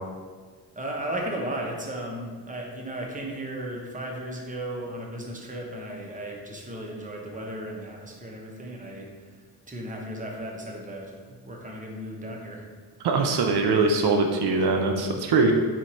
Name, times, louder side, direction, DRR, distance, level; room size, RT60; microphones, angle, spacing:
voice 1, 0.7-12.7, right 1 dB, 20° right, -1 dB, 0.8 m, -35 dB
voice 2, 13.0-15.5, right 3 dB, 75° right, 3 dB, 0.5 m, -22 dB
4.4 x 2.5 x 4.2 m, 1.6 s
cardioid pair, 80°, 40 cm